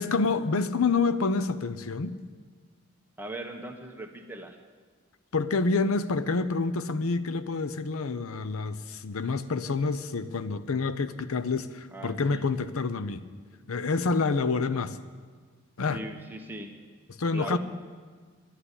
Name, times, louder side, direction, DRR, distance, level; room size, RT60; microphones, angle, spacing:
voice 1, 0.0-2.2 5.3-13.2 13.7-15.0 15.8-16.0 17.1-17.6, left 4 dB, 80° left, 14 dB, 0.6 m, -28 dB
voice 2, 3.2-4.6 11.9-12.4 15.9-16.7 17.3-17.6, right 1 dB, 10° right, 3 dB, 1.1 m, -39 dB
11.5 x 11.0 x 9.9 m, 1.5 s
head